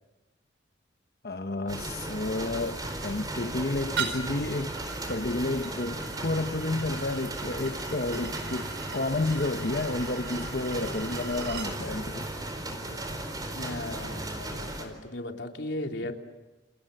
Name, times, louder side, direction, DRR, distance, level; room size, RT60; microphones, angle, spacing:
voice 1, 1.2-4.8 5.1-12.3, left 2 dB, 55° left, 1.0 m, -31 dB
sound 1, 1.7-14.9, right 1 dB, 20° right, 4.3 m, -36 dB
sound 2, 4.0-11.7, right 6 dB, 90° right, 4.8 m, -40 dB
voice 2, 13.5-16.1, left 1 dB, 70° left, 3.3 m, -36 dB
29.5 x 29.0 x 6.7 m
head